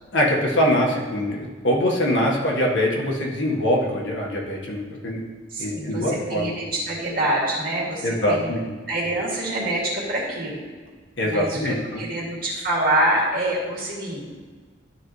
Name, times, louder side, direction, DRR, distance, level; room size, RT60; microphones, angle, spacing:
voice 1, 0.1-5.2 5.6-6.5 8.0-8.6 11.2-12.0, equal, 80° left, -2 dB, 1.6 m, -23 dB
voice 2, 5.5-8.5 8.9-10.6 11.2-14.3, right 1 dB, 50° right, -5 dB, 2.6 m, -26 dB
12.0 x 5.4 x 3.2 m, 1.4 s
head